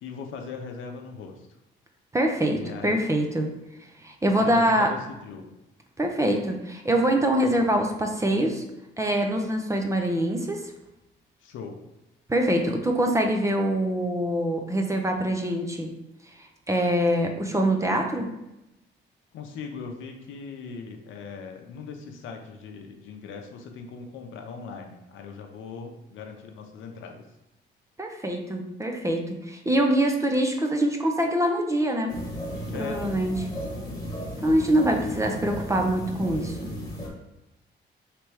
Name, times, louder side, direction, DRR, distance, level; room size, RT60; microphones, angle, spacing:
voice 1, 0.0-1.5 2.5-3.1 4.4-5.5 7.4-7.6 11.4-11.8 19.3-27.2 32.7-33.0 35.2-35.3 35.6-35.8, left 5 dB, 80° left, 4 dB, 0.7 m, -39 dB
voice 2, 2.1-3.5 4.0-5.0 6.0-8.6 9.0-10.7 12.3-15.9 16.4-18.3 28.0-32.1 32.8-33.5 34.4-36.7, right 1 dB, 15° right, 3 dB, 0.6 m, -24 dB
sound 1, 32.1-37.1, equal, 20° left, 1.3 m, -35 dB
3.4 x 3.0 x 4.7 m, 0.93 s
cardioid pair, 90°, 20 cm